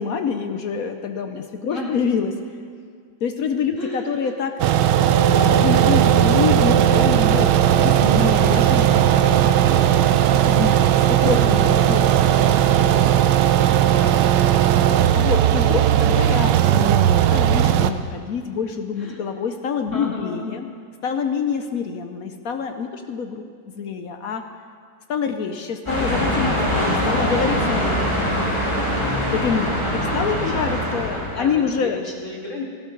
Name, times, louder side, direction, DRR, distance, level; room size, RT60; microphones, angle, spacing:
voice 1, 0.0-2.3 3.2-4.5 5.3-9.6 10.0-13.1 13.4-14.1 14.8-20.7 21.0-23.5 23.8-24.4 25.1-28.1 29.3-29.7 30.1-32.0, left 6 dB, 65° left, 6 dB, 0.9 m, -26 dB
voice 2, 3.8-4.2 11.3-11.8 19.0-19.2 19.9-20.6 29.8-32.6, left 2 dB, 40° left, -2 dB, 2.4 m, -33 dB
sound 1, 4.6-17.9, right 11 dB, 70° right, 1.1 m, -17 dB
sound 2, 25.9-31.5, equal, 15° left, 3.0 m, -23 dB
18.0 x 13.5 x 3.9 m, 2.1 s
omnidirectional pair, 2.2 m